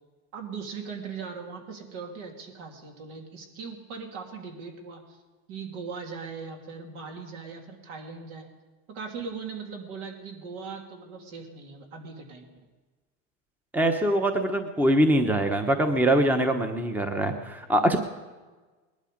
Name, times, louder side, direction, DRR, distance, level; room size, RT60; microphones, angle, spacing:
voice 1, 0.3-5.2 5.5-8.5 8.9-12.5, right 5 dB, 70° right, 2 dB, 3.0 m, -39 dB
voice 2, 13.7-18.0, right 1 dB, 5° right, 6 dB, 0.9 m, -23 dB
19.5 x 11.5 x 5.2 m, 1.3 s
supercardioid pair, 130°, 39 cm